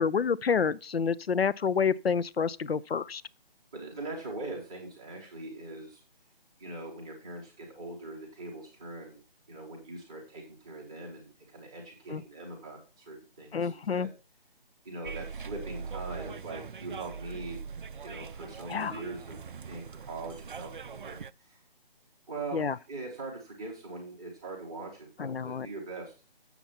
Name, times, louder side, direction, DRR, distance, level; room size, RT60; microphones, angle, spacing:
voice 1, 0.0-3.2 12.1-12.2 13.5-14.1 18.7-19.0 22.5-22.8 25.2-25.7, left 6 dB, 80° left, 0.6 m, -28 dB
voice 2, 3.7-6.0 6.6-9.2 9.5-14.1 14.8-17.6 18.0-21.6 22.3-26.1, right 2 dB, 5° right, 0.6 m, -42 dB
sound 1, 15.0-21.3, right 5 dB, 60° right, 0.4 m, -41 dB
7.2 x 6.9 x 5.7 m
figure-of-eight pair, 150°, 30 cm